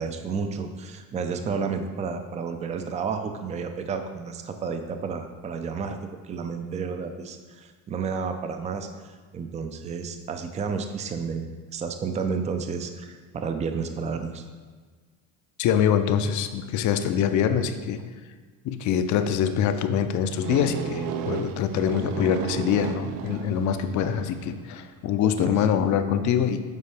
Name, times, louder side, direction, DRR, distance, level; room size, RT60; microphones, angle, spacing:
voice 1, 0.0-6.0 6.2-8.9 9.3-14.4 25.4-25.7, right 5 dB, 20° right, 7 dB, 0.4 m, -31 dB
voice 2, 15.6-18.1 18.6-26.6, left 8 dB, 50° left, 9 dB, 0.5 m, -24 dB
sound 1, 20.4-24.4, right 6 dB, 60° right, 0.6 m, -33 dB
8.3 x 4.4 x 3.3 m, 1.5 s
cardioid pair, 115°, 39 cm